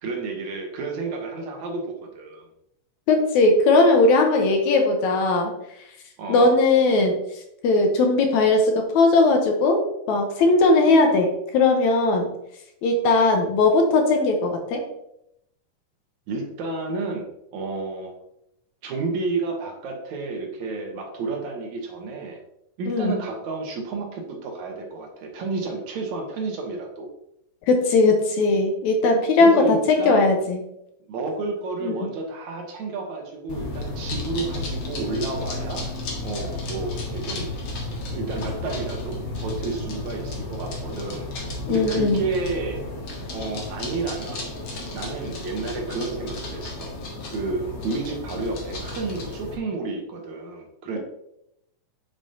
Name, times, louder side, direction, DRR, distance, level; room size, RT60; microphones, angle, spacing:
voice 1, 0.0-2.5 6.2-6.5 16.3-18.2 18.8-22.4 22.8-27.1 29.4-30.3 31.1-35.9 36.2-37.5 38.1-41.3 41.7-42.8 43.3-44.5 44.9-46.9 47.3-51.0, right 3 dB, 70° right, 2 dB, 2.3 m, -31 dB
voice 2, 3.1-5.5 6.3-7.1 7.6-9.8 10.1-12.3 12.8-14.8 22.9-23.2 27.7-30.6 31.8-32.1 41.7-42.3, left 3 dB, 70° left, 3 dB, 2.1 m, -19 dB
sound 1, 33.5-49.6, left 2 dB, 50° left, 1.7 m, -33 dB
8.1 x 6.8 x 2.7 m, 0.80 s
omnidirectional pair, 3.7 m